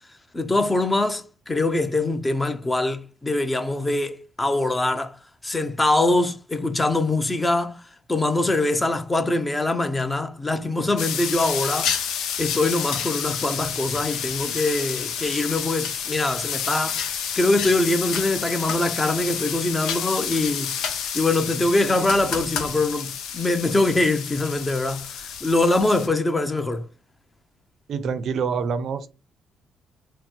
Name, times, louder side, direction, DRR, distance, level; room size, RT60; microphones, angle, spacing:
voice 1, 0.3-7.8 8.1-12.1 12.4-26.9, left 2 dB, 20° left, 0.7 m, -23 dB
sound 1, 11.0-26.1, left 7 dB, 85° left, 0.8 m, -29 dB
voice 2, 27.9-29.1, right 6 dB, 65° right, 0.6 m, -26 dB
4.1 x 2.1 x 4.3 m
cardioid pair, 90°, 0 cm